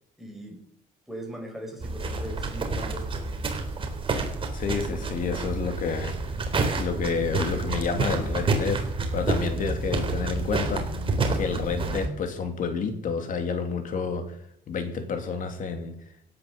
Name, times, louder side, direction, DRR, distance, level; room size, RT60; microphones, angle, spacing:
voice 1, 0.2-0.6 1.1-3.5, equal, ahead, 2 dB, 5.3 m, -40 dB
sound 1, 1.8-12.1, right 3 dB, 30° right, 3.6 m, -29 dB
voice 2, 4.5-6.2 6.8-8.8 9.1-10.9 11.3-14.4 14.7-16.0, left 5 dB, 50° left, 6 dB, 3.1 m, -29 dB
17.0 x 9.6 x 6.7 m, 0.77 s
cardioid pair, 110°, 17 cm